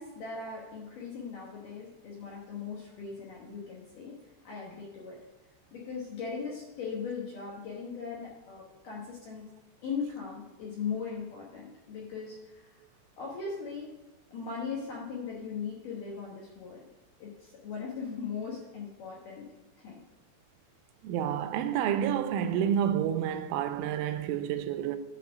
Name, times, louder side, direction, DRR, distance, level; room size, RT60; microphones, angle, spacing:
voice 1, 0.0-4.2 4.4-5.2 5.7-9.4 9.8-12.8 13.2-14.0 14.3-16.8 17.2-19.5 19.8-20.0, left 5 dB, 75° left, 2.0 m, -39 dB
voice 2, 21.0-25.0, right 9 dB, 85° right, 3.0 m, -29 dB
11.0 x 4.1 x 6.1 m
omnidirectional pair, 5.5 m